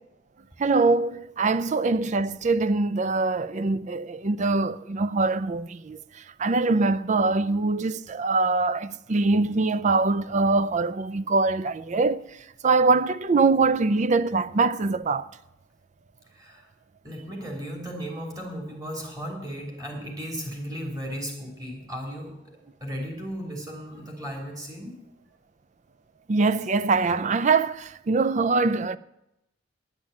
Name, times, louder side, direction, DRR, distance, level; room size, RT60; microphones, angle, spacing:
voice 1, 0.6-6.0 6.4-12.2 12.6-15.3 26.3-29.0, right 3 dB, 40° right, 0.4 m, -23 dB
voice 2, 16.3-16.6 17.0-22.3 22.8-24.9, equal, 20° right, 3.3 m, -35 dB
10.5 x 9.0 x 8.6 m
head